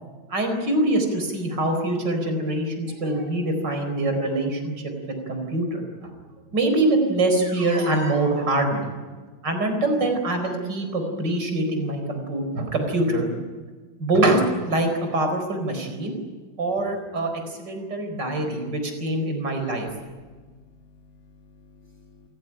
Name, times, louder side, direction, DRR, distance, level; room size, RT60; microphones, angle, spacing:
voice 1, 0.3-4.7 5.1-6.1 6.5-8.9 9.4-13.3 14.0-16.2 16.6-19.9, right 2 dB, 65° right, 5 dB, 5.1 m, -24 dB
voice 2, 20.1-22.3, left 4 dB, 40° left, 0 dB, 3.4 m, -54 dB
29.0 x 16.0 x 10.0 m, 1.4 s
omnidirectional pair, 2.0 m